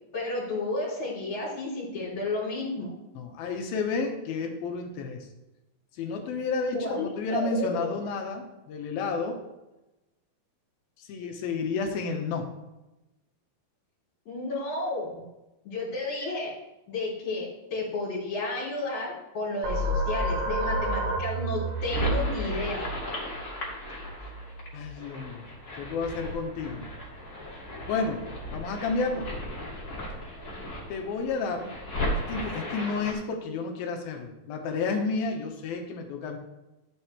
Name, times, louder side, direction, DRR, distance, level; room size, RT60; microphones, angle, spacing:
voice 1, 0.1-3.0 6.7-7.9 14.3-15.1 15.7-16.5 16.9-22.8, left 2 dB, 50° left, -9 dB, 4.1 m, -32 dB
voice 2, 3.1-5.3 5.9-9.4 11.0-12.5 24.7-25.5 25.8-27.2 27.9-29.3 30.9-31.7 32.1-36.4, left 4 dB, 75° left, 3 dB, 2.8 m, -31 dB
sound 1, 19.6-24.9, right 1 dB, 80° right, 3.0 m, -30 dB
sound 2, 21.7-33.1, left 1 dB, 30° left, 2.1 m, -36 dB
12.5 x 8.4 x 3.2 m, 0.99 s
omnidirectional pair, 4.4 m